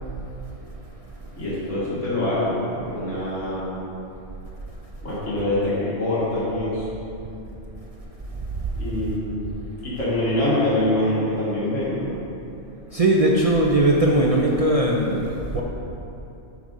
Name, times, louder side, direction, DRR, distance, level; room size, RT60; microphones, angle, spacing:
voice 1, 1.4-3.8 5.0-6.9 8.8-9.5 9.8-12.2, left 1 dB, 75° left, -9 dB, 2.2 m, -24 dB
voice 2, 12.9-15.6, right 1 dB, 45° right, -2 dB, 0.4 m, -19 dB
7.9 x 3.8 x 5.3 m, 2.8 s
omnidirectional pair, 1.3 m